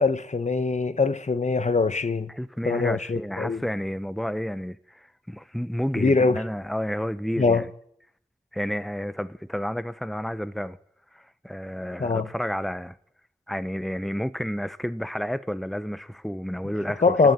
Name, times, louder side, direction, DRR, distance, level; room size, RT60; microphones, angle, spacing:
voice 1, 0.0-2.3 2.6-3.6 6.0-6.4 7.4-7.6 12.0-12.3 17.0-17.3, left 4 dB, 60° left, 1.2 m, -22 dB
voice 2, 2.3-7.7 8.5-10.8 11.1-13.0 13.5-17.1, equal, ahead, 0.9 m, -31 dB
27.5 x 13.0 x 9.7 m
wide cardioid pair, 65°, 13 cm